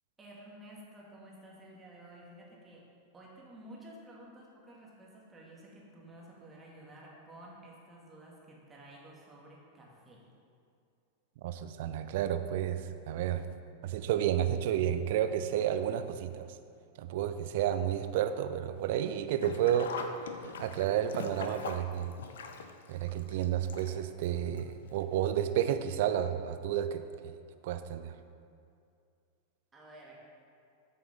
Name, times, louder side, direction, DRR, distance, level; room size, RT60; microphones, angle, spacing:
voice 1, 0.2-2.9 3.1-10.2 29.7-30.2, right 1 dB, 15° right, -4 dB, 2.5 m, -52 dB
voice 2, 11.4-13.4 13.8-16.5 17.0-19.9 20.4-22.1 22.9-27.3 27.6-28.1, right 10 dB, 50° right, 10 dB, 0.5 m, -31 dB
Sink (filling or washing), 19.3-24.3 24.6-24.7 25.7-25.8 26.1-26.2, left 5 dB, 65° left, 0.7 m, -42 dB
13.5 x 6.8 x 3.8 m, 2.4 s
figure-of-eight pair, 90°, 0 cm